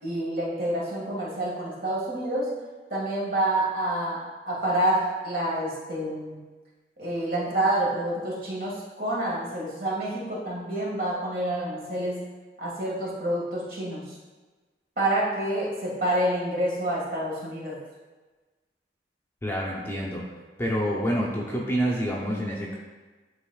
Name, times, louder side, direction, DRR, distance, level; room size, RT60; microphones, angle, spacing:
voice 1, 0.0-2.5 2.9-6.4 7.0-12.3 12.6-14.2 15.0-17.8, right 1 dB, 50° right, -5 dB, 1.8 m, -28 dB
voice 2, 19.4-20.2 20.6-22.8, equal, 15° left, -3 dB, 0.7 m, -27 dB
10.5 x 4.0 x 2.4 m, 1.3 s
head